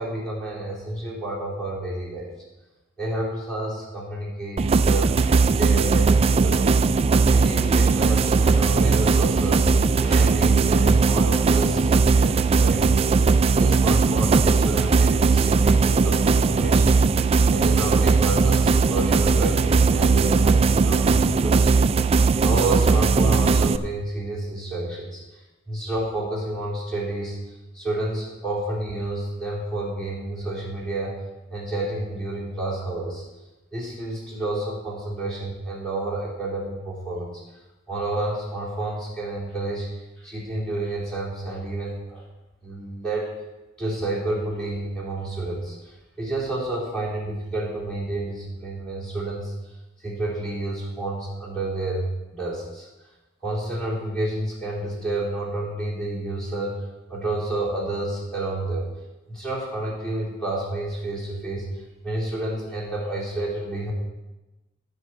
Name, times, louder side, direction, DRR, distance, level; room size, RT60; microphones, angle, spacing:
voice 1, 0.0-2.3 3.0-6.7 7.3-9.7 10.0-13.0 13.5-17.0 17.5-21.7 22.4-25.2 25.7-27.4 27.7-31.2 31.5-33.2 33.7-37.3 37.9-39.9 40.2-42.2 42.6-43.3 43.8-45.7 46.2-49.5 50.0-52.9 53.4-56.8 57.1-58.9 59.3-61.7 62.0-63.9, right 2 dB, 5° left, -6 dB, 3.4 m, -30 dB
sound 1, 4.6-23.8, right 4 dB, 30° right, 0.3 m, -19 dB
15.5 x 6.2 x 4.7 m, 1.1 s
head